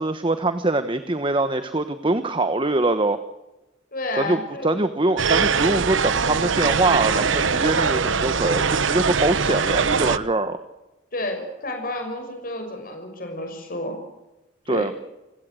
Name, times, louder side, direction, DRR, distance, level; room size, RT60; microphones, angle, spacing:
voice 1, 0.0-3.2 4.2-10.6 14.7-14.9, right 2 dB, 25° right, 10 dB, 1.2 m, -23 dB
voice 2, 3.9-4.8 11.1-14.0 14.7-14.9, left 1 dB, 50° left, 4 dB, 6.1 m, -30 dB
sound 1, 5.2-10.2, right 5 dB, 85° right, 1.0 m, -22 dB
29.0 x 17.5 x 7.8 m, 1.0 s
head